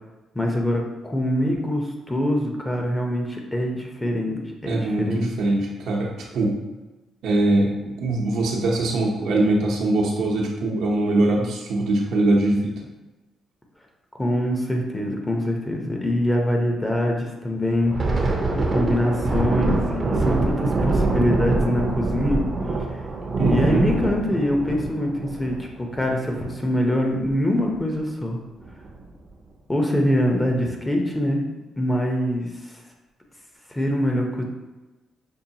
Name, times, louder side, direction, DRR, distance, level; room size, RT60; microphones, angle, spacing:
voice 1, 0.3-5.4 14.2-18.2 18.5-22.4 23.4-28.4 29.7-31.4 31.8-32.5 33.7-34.4, left 1 dB, 15° left, 1 dB, 0.7 m, -24 dB
voice 2, 4.7-6.6 7.2-12.8 23.4-23.8, right 2 dB, 80° right, -1 dB, 0.8 m, -22 dB
Thunder, 17.7-26.8 27.1-27.3 27.7-28.0 28.6-29.1, right 2 dB, 35° right, 0.6 m, -24 dB
5.4 x 2.2 x 2.8 m, 1.1 s
cardioid pair, 90°, 0 cm